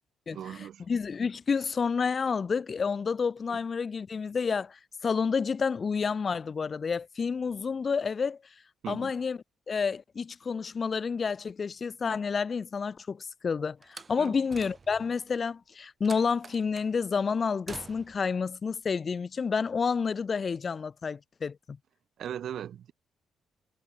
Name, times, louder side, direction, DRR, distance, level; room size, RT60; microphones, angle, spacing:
voice 1, 0.3-0.9 3.5-3.6 8.8-9.1 14.2-14.3 22.2-22.9, right 10 dB, 65° right, 1.3 m, -38 dB
voice 2, 0.9-8.4 8.9-9.4 9.7-21.8, left 5 dB, 40° left, 0.8 m, -29 dB
Slam, 13.8-15.2 16.0-16.9 17.7-18.3, right 4 dB, 30° right, 2.6 m, -46 dB
cardioid pair, 90°, 0 cm